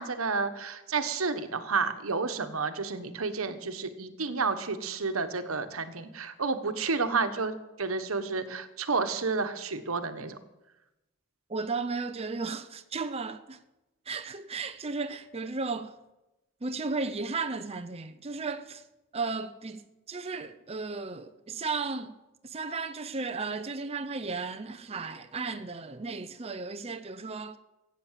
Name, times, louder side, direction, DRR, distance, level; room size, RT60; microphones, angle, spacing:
voice 1, 0.0-10.4, right 4 dB, 85° right, 1.3 m, -31 dB
voice 2, 11.5-13.6 14.1-15.9 16.6-18.8 19.1-22.2 22.4-27.6, right 4 dB, 30° right, 0.6 m, -34 dB
16.0 x 8.6 x 7.4 m
head